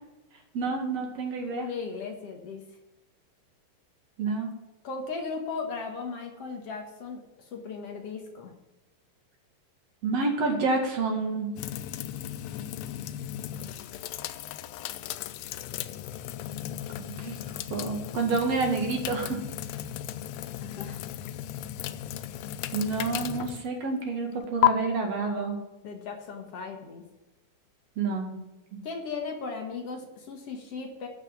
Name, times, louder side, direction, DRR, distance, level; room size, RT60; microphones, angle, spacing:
voice 1, 0.5-1.7 4.2-4.5 10.0-11.5 17.0-17.4 17.7-19.4 22.7-25.6 28.0-28.4, right 3 dB, 60° right, 2 dB, 3.0 m, -28 dB
voice 2, 1.5-2.6 4.8-8.5 20.6-21.1 25.8-27.0 28.8-31.1, left 4 dB, 60° left, 3 dB, 2.4 m, -37 dB
sound 1, 11.6-24.7, left 13 dB, 75° left, 1.7 m, -34 dB
12.0 x 6.1 x 7.6 m, 1.0 s
omnidirectional pair, 3.3 m